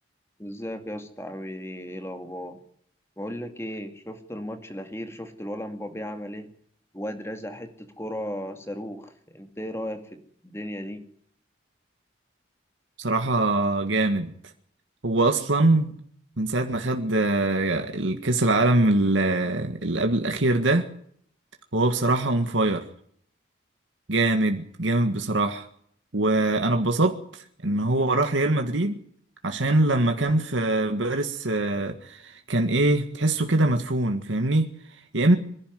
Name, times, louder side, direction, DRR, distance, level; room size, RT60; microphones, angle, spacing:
voice 1, 0.4-2.6 3.2-6.5 6.9-11.0, equal, 15° left, 2.3 m, -35 dB
voice 2, 13.0-14.3 15.0-15.9 16.4-20.9 21.7-22.9 24.1-25.7 26.1-29.0 29.4-35.4, right 2 dB, 90° right, 1.8 m, -23 dB
26.5 x 11.5 x 9.6 m
head